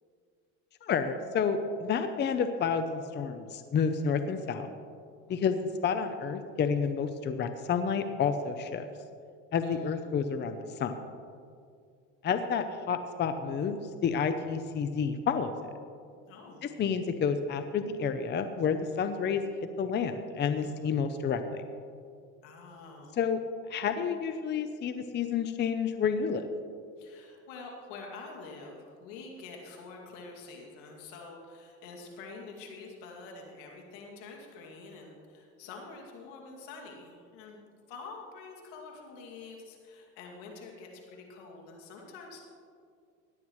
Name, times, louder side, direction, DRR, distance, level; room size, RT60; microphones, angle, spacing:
voice 1, 0.8-4.7 5.3-8.9 9.5-10.9 12.2-15.7 16.6-19.4 19.8-21.6 23.2-23.4 23.7-26.5, left 6 dB, 30° left, 9 dB, 0.6 m, -30 dB
voice 2, 5.2-5.6 9.6-10.0 16.3-16.7 20.6-20.9 22.4-23.2 27.0-37.6 37.9-42.4, left 3 dB, 80° left, 1 dB, 2.4 m, -47 dB
17.0 x 10.5 x 3.1 m, 2.3 s
supercardioid pair, 105°, 37 cm